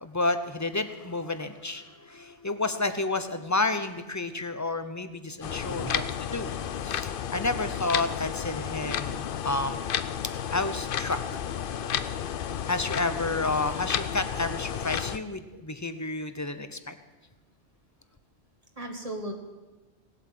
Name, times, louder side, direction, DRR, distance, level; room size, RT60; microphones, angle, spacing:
voice 1, 0.0-6.5 6.8-9.8 10.5-11.2 11.9-12.1 12.7-17.0, left 2 dB, 15° left, 10 dB, 0.7 m, -30 dB
sound 1, 5.4-15.2, left 8 dB, 55° left, 0.7 m, -32 dB
voice 2, 18.8-19.3, right 1 dB, 30° right, 2 dB, 1.8 m, -36 dB
18.5 x 8.5 x 7.7 m, 1.2 s
omnidirectional pair, 1.2 m